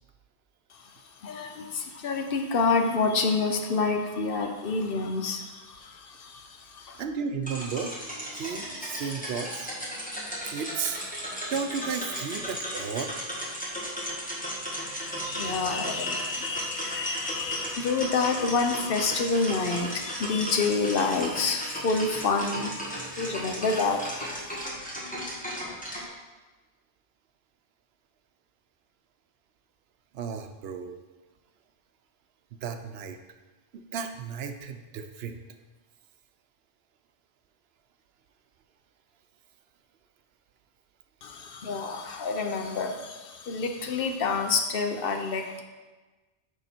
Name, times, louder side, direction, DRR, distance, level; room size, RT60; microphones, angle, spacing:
voice 1, 0.7-7.0 15.0-24.7 41.2-45.6, left 4 dB, 65° left, 5 dB, 0.9 m, -28 dB
voice 2, 7.0-7.9 8.3-9.7 10.5-11.0 11.5-13.2 30.1-31.0 32.6-33.2 33.9-35.4, right 6 dB, 75° right, 7 dB, 0.8 m, -33 dB
sound 1, 7.4-26.1, equal, 10° left, 1.5 m, -35 dB
6.6 x 4.8 x 4.3 m, 1.2 s
omnidirectional pair, 1.1 m